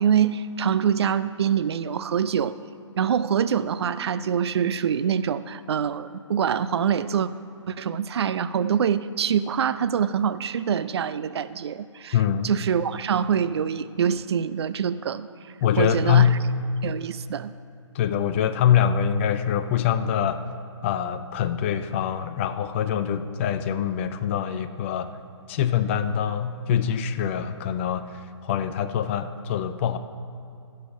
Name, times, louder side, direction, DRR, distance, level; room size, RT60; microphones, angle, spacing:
voice 1, 0.0-2.6 3.0-7.3 7.7-12.2 12.4-16.3 16.8-17.5, right 8 dB, 60° right, 14 dB, 0.4 m, -25 dB
voice 2, 12.1-12.5 15.6-16.4 17.9-20.4 20.8-25.1 25.5-30.0, left 9 dB, 25° left, 10 dB, 0.4 m, -24 dB
16.0 x 6.7 x 5.0 m, 2.7 s
figure-of-eight pair, 140°, 16 cm